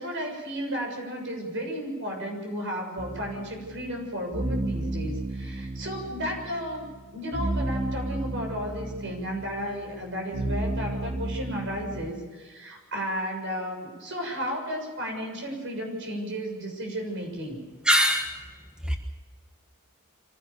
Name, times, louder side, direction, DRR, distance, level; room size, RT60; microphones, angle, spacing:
voice 1, 0.0-6.9 7.1-17.6, equal, 60° right, 2 dB, 7.0 m, -33 dB
sound 1, 3.0-12.1, right 2 dB, 30° right, 0.7 m, -33 dB
voice 2, 17.8-18.3 18.9-19.0, equal, 5° right, 3 dB, 1.4 m, -21 dB
25.0 x 16.5 x 7.0 m, 1.4 s
head